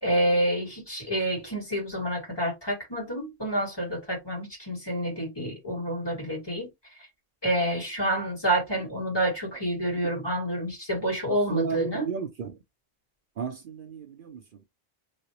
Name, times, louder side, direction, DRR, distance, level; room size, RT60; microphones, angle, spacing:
voice 1, 0.0-6.7 7.4-12.0, right 1 dB, 25° left, 1.8 m, -28 dB
voice 2, 11.3-12.6 13.4-14.4, right 7 dB, 60° right, 0.8 m, -33 dB
3.2 x 2.9 x 2.8 m
omnidirectional pair, 1.0 m